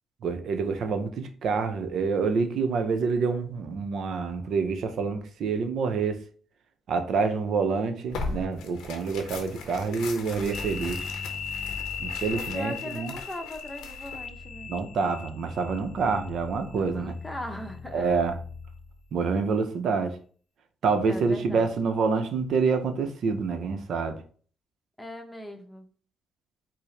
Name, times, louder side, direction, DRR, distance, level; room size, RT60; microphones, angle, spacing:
voice 1, 0.2-6.2 6.9-11.1 12.0-13.1 14.7-17.1 17.9-18.3 19.1-20.2 20.8-24.2, right 5 dB, 65° right, 7 dB, 0.6 m, -27 dB
Tearing, 8.1-14.3, left 4 dB, 85° left, 0.6 m, -39 dB
sound 1, 10.5-19.1, left 6 dB, 35° left, 0.3 m, -38 dB
voice 2, 12.3-14.7 16.8-18.2 21.0-21.7 25.0-25.9, left 1 dB, 10° left, 3 dB, 0.8 m, -39 dB
4.5 x 2.0 x 3.2 m, 0.44 s
cardioid pair, 90°, 0 cm